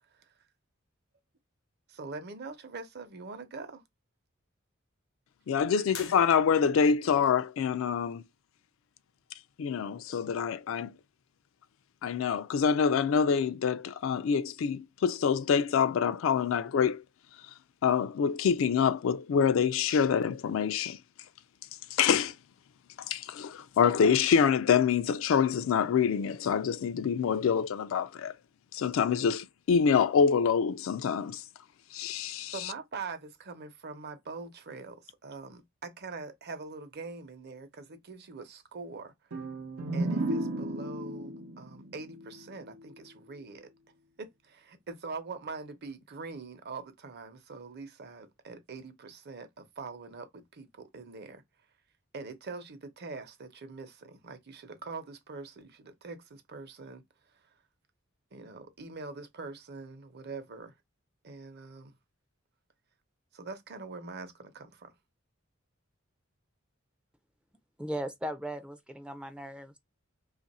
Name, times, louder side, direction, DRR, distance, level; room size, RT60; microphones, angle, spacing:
voice 1, 1.9-3.8 5.7-5.9 32.5-39.5 39.9-43.7 44.2-51.4 52.1-57.0 57.3-57.4 58.3-60.7 61.2-61.9 63.3-64.9, right 4 dB, 55° right, 0.7 m, -43 dB
voice 2, 5.5-8.2 9.6-10.9 12.0-17.0 17.8-21.0 21.9-22.3 23.1-28.3 28.7-31.4 31.9-32.5, left 6 dB, 70° left, 0.3 m, -26 dB
sound 1, 5.9-6.9, left 7 dB, 90° left, 0.9 m, -45 dB
sound 2, 39.3-43.0, right 1 dB, 85° right, 0.7 m, -34 dB
voice 3, 67.8-69.8, equal, 5° right, 0.4 m, -37 dB
2.9 x 2.5 x 4.1 m
head